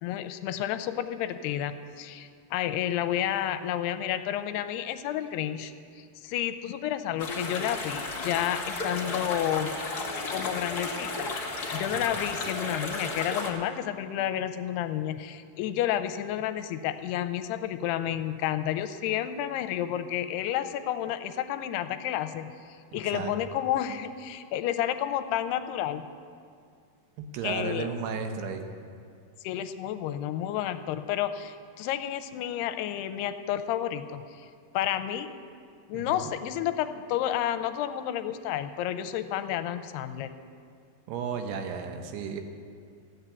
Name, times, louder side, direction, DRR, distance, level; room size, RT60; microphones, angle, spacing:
voice 1, 0.0-9.7 10.3-11.3 11.7-22.5 22.9-26.1 27.4-27.9 29.4-34.5 34.7-35.3 35.9-40.4, left 11 dB, 85° left, 11 dB, 2.7 m, -31 dB
sound 1, 7.2-13.5, left 3 dB, 45° left, 1.2 m, -33 dB
voice 2, 27.3-28.7 35.9-36.3 41.1-42.4, right 5 dB, 80° right, 6 dB, 3.1 m, -33 dB
14.5 x 9.5 x 8.3 m, 2.3 s
omnidirectional pair, 4.7 m